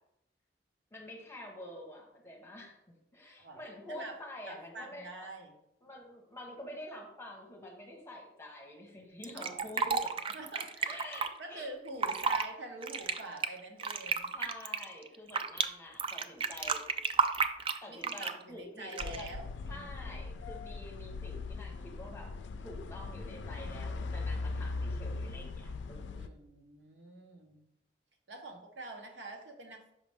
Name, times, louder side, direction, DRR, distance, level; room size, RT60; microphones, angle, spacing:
voice 1, 0.9-2.8 3.1-5.3 5.8-10.0 10.8-11.7 14.3-16.8 17.8-19.3 19.6-22.3 22.6-26.3, left 1 dB, 15° left, 0 dB, 1.2 m, -47 dB
voice 2, 4.4-5.5 9.3-9.8 10.3-11.0 11.4-14.3 17.9-19.9 26.2-27.6 28.3-29.9, right 2 dB, 80° right, 2 dB, 1.1 m, -46 dB
Fill (with liquid), 9.2-11.3 11.9-12.5 12.8-15.7 16.0-18.4 18.9-19.3, right 5 dB, 30° right, 0.3 m, -32 dB
sound 1, 19.0-26.3, left 3 dB, 90° left, 0.4 m, -39 dB
5.8 x 5.1 x 3.5 m, 0.80 s
head